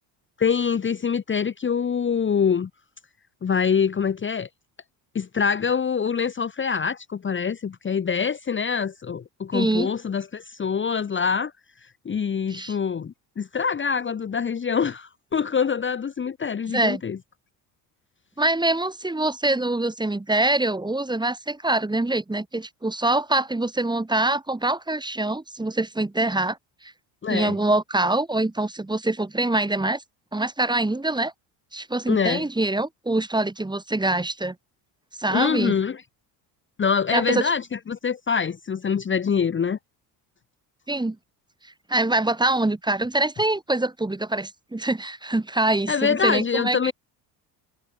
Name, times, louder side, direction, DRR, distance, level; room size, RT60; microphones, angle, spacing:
voice 1, 0.4-2.7 3.4-4.5 5.1-11.5 12.0-17.2 27.2-27.6 32.1-32.4 35.3-36.0 36.8-39.8 45.9-46.9, left 6 dB, 25° left, 1.0 m, -25 dB
voice 2, 9.5-9.9 12.5-12.8 16.7-17.0 18.4-26.6 26.8-26.9 27.3-30.0 30.3-31.3 31.7-34.6 35.2-35.7 37.1-37.4 40.9-41.2 41.9-46.9, right 2 dB, 10° right, 1.7 m, -24 dB
supercardioid pair, 90°, 46 cm